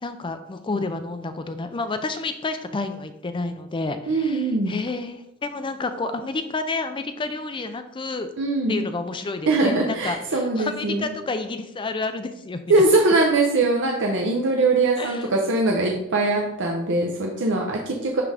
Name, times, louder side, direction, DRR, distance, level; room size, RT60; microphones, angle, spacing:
voice 1, 0.0-8.3 8.7-12.8 15.0-15.2, left 3 dB, 25° left, 8 dB, 0.4 m, -30 dB
voice 2, 4.1-4.7 8.4-8.8 9.5-11.1 12.7-18.2, right 2 dB, 55° right, 1 dB, 0.7 m, -21 dB
10.5 x 3.7 x 3.4 m, 0.88 s
head